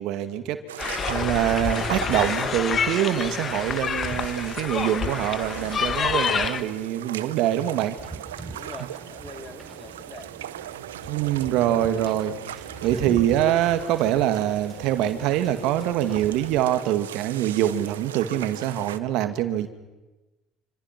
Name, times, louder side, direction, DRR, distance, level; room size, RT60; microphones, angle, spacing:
voice 1, 0.0-8.0 11.1-19.7, right 12 dB, 70° right, 9 dB, 2.0 m, -24 dB
sound 1, 0.7-19.0, right 11 dB, 90° right, 0.9 m, -38 dB
sound 2, 0.8-6.6, left 6 dB, 40° left, 1.6 m, -28 dB
Wind / Boat Water vehicle, 8.0-16.6, right 3 dB, 15° right, 4.0 m, -42 dB
voice 2, 8.5-10.4, left 3 dB, 25° left, 8 dB, 2.5 m, -44 dB
27.5 x 26.5 x 6.0 m, 1.1 s
hypercardioid pair, 70°, 0 cm